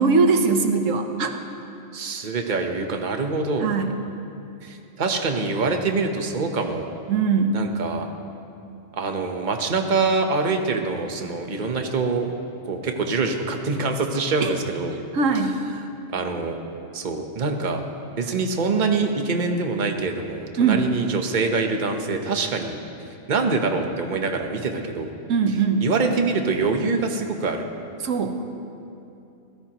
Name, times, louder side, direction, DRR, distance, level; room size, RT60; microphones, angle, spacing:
voice 1, 0.0-1.4 3.6-3.9 7.1-7.6 14.4-14.6 15.1-15.6 20.6-20.9 25.3-25.9 28.0-28.4, right 4 dB, 90° right, 6 dB, 1.4 m, -21 dB
voice 2, 1.9-3.7 4.6-6.9 7.5-8.1 8.9-12.3 12.6-15.0 15.8-15.9 16.1-16.6 16.9-17.8 18.2-22.8 23.3-25.1 25.8-27.6, right 4 dB, 40° right, 4 dB, 1.1 m, -25 dB
23.0 x 17.0 x 3.0 m, 2.7 s
omnidirectional pair, 1.3 m